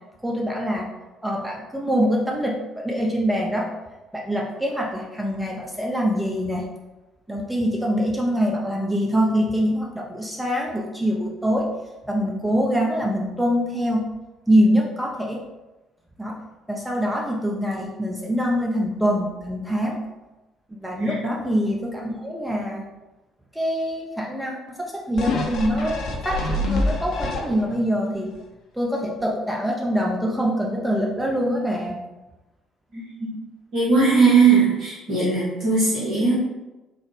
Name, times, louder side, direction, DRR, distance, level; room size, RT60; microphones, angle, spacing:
voice 1, 0.2-0.9 1.2-3.7 4.1-6.7 7.3-11.7 12.1-14.1 14.5-15.4 16.2-16.4 16.7-20.0 20.7-22.8 23.5-26.0 26.2-28.3 28.7-32.0, equal, 5° right, -2 dB, 0.6 m, -24 dB
sound 1, 25.2-27.9 28.4-28.5, left 1 dB, 60° left, 0.6 m, -26 dB
voice 2, 33.7-36.3, right 4 dB, 60° right, -8 dB, 1.0 m, -19 dB
3.8 x 2.1 x 3.2 m, 1.1 s
figure-of-eight pair, 50°, 0 cm